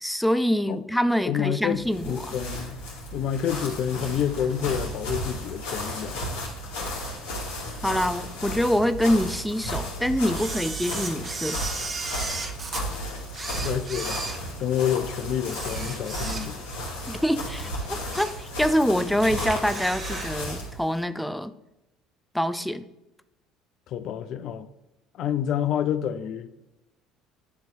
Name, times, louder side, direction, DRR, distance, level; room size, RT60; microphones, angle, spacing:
voice 1, 0.0-2.3 7.8-11.6 17.1-21.5 22.3-22.8, equal, 5° left, 0.5 m, -25 dB
voice 2, 1.2-2.8 3.1-6.2 13.5-14.2 14.6-16.6 23.9-24.7 25.2-26.5, left 9 dB, 60° left, 0.5 m, -28 dB
sound 1, 1.7-20.8, equal, 85° left, 2.3 m, -34 dB
Camera, 10.3-12.8 13.3-15.0 15.4-16.8 17.2-17.3 17.8-18.4 18.8-18.9 19.2-20.4 20.6-20.7, right 4 dB, 35° right, 1.2 m, -35 dB
9.3 x 3.2 x 4.4 m
hypercardioid pair, 75°, 0 cm